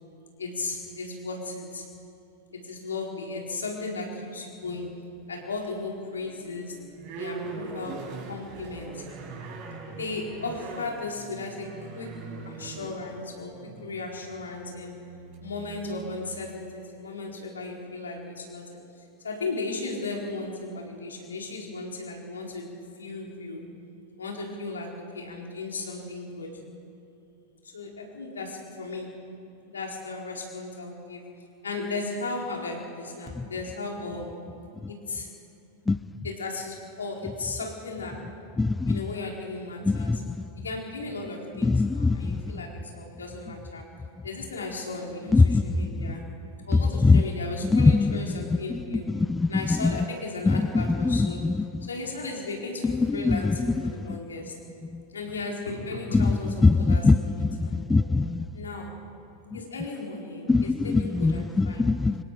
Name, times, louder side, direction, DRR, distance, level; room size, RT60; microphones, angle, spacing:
voice 1, 0.4-1.8 2.5-4.9 5.3-6.7 7.1-8.0 8.3-9.1 9.9-11.7 11.9-12.1 12.4-13.5 13.8-15.0 15.4-18.6 19.0-22.7 23.0-23.6 24.2-26.6 27.6-29.1 29.7-31.2 31.6-34.3 34.9-35.3 36.2-38.2 38.8-40.2 40.6-43.8 44.2-46.2 46.6-49.1 49.5-51.4 51.8-54.5 55.1-58.0 58.5-58.9 59.5-61.8, left 3 dB, 70° left, 4.3 m, -36 dB
sound 1, 4.6-5.3 5.8-16.4, right 4 dB, 45° right, 6.1 m, -42 dB
voice 2, 38.6-39.0 39.8-40.4 41.6-42.4 45.3-45.6 47.0-47.2 47.7-48.2 48.7-48.8 49.1-49.9 50.5-51.7 52.8-53.6 54.1-54.2 54.9-55.0 56.1-57.2 57.6-58.5 60.5-62.2, left 3 dB, 10° left, 0.4 m, -22 dB
25.5 x 24.0 x 5.0 m
figure-of-eight pair, 90°, 0 cm